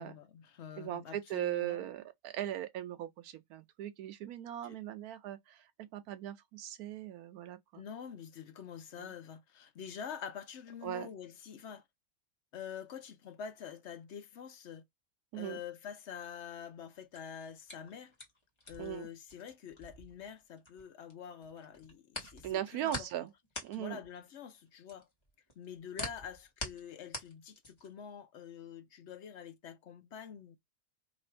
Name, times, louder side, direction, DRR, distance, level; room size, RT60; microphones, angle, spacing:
voice 1, 0.0-1.9 4.6-4.8 7.7-11.8 12.5-14.8 15.3-18.1 18.7-23.1 23.8-25.1 25.6-30.6, left 8 dB, 60° left, 0.8 m, -46 dB
voice 2, 0.8-7.8 9.0-9.1 10.8-11.1 15.3-15.6 18.8-19.1 22.4-23.3 23.6-24.0, right 12 dB, 85° right, 1.1 m, -39 dB
sound 1, 16.9-21.1 21.4-28.0, left 1 dB, 20° left, 1.1 m, -44 dB
3.0 x 2.5 x 4.3 m
omnidirectional pair, 1.5 m